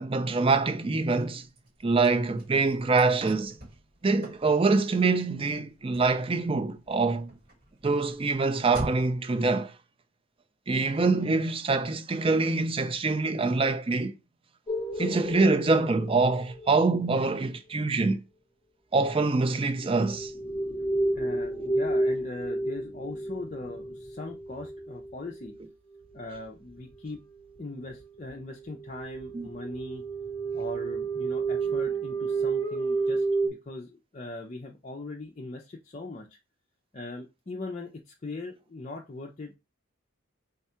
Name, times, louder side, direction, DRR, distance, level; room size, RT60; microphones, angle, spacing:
voice 1, 0.0-1.5 1.8-3.5 4.0-7.3 7.8-9.7 10.7-14.1 15.0-18.2 18.9-20.3 29.3-29.5, right 3 dB, 25° right, 0.4 m, -25 dB
Car / Slam, 0.6-9.3, right 1 dB, 40° right, 2.0 m, -45 dB
sound 1, 14.7-17.1 19.9-25.5 26.3-26.4 26.8-26.9 27.6-27.7 27.8-28.0 28.3-33.5, right 3 dB, 15° left, 0.9 m, -31 dB
voice 2, 21.1-25.5 26.1-27.2 27.6-30.0 30.5-36.4 36.9-39.6, left 2 dB, 35° left, 0.5 m, -40 dB
3.5 x 2.3 x 4.2 m
head